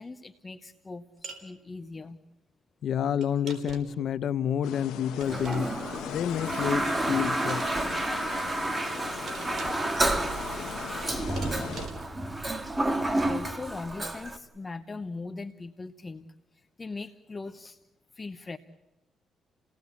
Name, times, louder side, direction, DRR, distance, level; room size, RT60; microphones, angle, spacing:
voice 1, 0.0-2.2 12.7-16.3 16.5-17.8 18.1-18.6, left 3 dB, 25° left, 0.9 m, -40 dB
sound 1, 1.2-1.5 3.2-4.0 5.2-5.9 7.3-7.8 9.3-9.9 11.4-12.2, right 5 dB, 60° right, 4.0 m, -44 dB
voice 2, 2.8-5.7 6.1-7.8, left 9 dB, 65° left, 0.8 m, -29 dB
sound 2, 4.6-11.9, left 11 dB, 90° left, 1.1 m, -40 dB
Toilet flush, 5.2-14.4, right 1 dB, 20° right, 1.8 m, -30 dB
29.5 x 18.0 x 8.4 m
cardioid pair, 90°, 0 cm